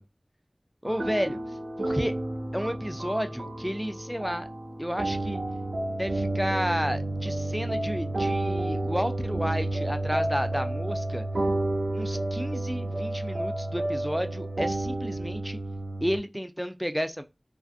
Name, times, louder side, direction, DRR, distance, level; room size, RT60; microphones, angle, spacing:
voice 1, 0.8-1.4 1.8-2.2 2.5-4.5 4.8-5.4 6.0-11.2 11.9-15.6 16.0-17.2, equal, ahead, 0.3 m, -31 dB
sound 1, 0.9-16.2, right 1 dB, 80° right, 0.5 m, -30 dB
2.4 x 2.4 x 2.4 m
wide cardioid pair, 50°, 0 cm